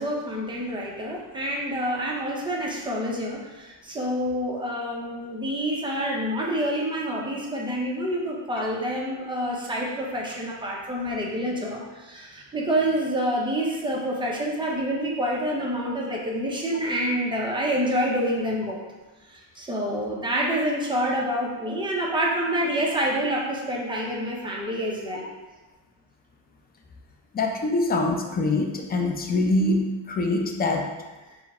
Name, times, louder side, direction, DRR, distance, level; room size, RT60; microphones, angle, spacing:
voice 1, 0.0-18.8 19.3-25.3, equal, 10° right, -3 dB, 0.7 m, -27 dB
voice 2, 27.3-30.9, left 2 dB, 25° left, 3 dB, 0.4 m, -24 dB
4.5 x 2.2 x 4.2 m, 1.2 s
cardioid pair, 135°, 43 cm